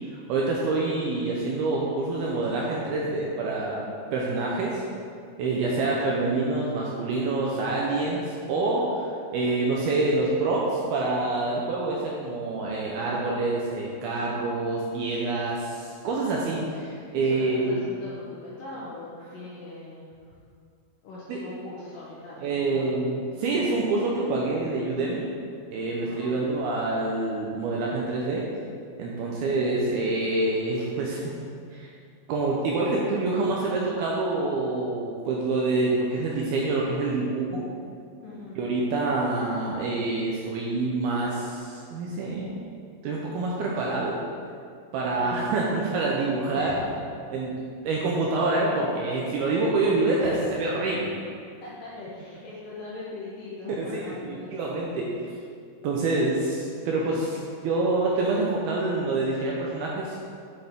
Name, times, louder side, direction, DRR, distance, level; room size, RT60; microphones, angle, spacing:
voice 1, 0.3-3.9 4.1-4.8 5.4-17.8 21.3-21.4 22.4-25.3 25.7-28.5 29.0-31.4 31.7-31.9 32.3-37.7 38.6-42.6 43.0-44.2 44.9-46.7 47.3-47.5 47.8-51.2 53.8-55.1 55.8-60.2, right 2 dB, 75° right, -3 dB, 2.4 m, -26 dB
voice 2, 5.8-6.1 17.1-20.3 21.0-23.0 26.0-26.4 38.2-38.6 45.1-46.0 46.5-47.0 50.2-50.6 51.6-55.1, left 2 dB, 70° left, -6 dB, 2.2 m, -41 dB
9.5 x 7.5 x 3.7 m, 2.2 s
omnidirectional pair, 5.2 m